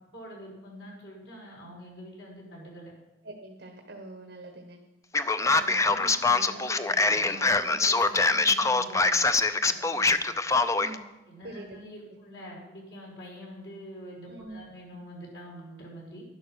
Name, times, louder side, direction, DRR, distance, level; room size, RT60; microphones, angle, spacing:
voice 1, 0.1-2.9 5.5-10.2 11.3-16.2, equal, 80° left, -3 dB, 5.7 m, -45 dB
voice 2, 3.2-4.8 5.4-6.0 10.7-11.1 11.4-11.8 14.3-14.7, right 2 dB, 65° right, 3 dB, 1.3 m, -44 dB
Male speech man speaking, 5.1-11.0, left 3 dB, 20° left, 0.5 m, -24 dB
11.5 x 11.0 x 6.4 m, 1.0 s
head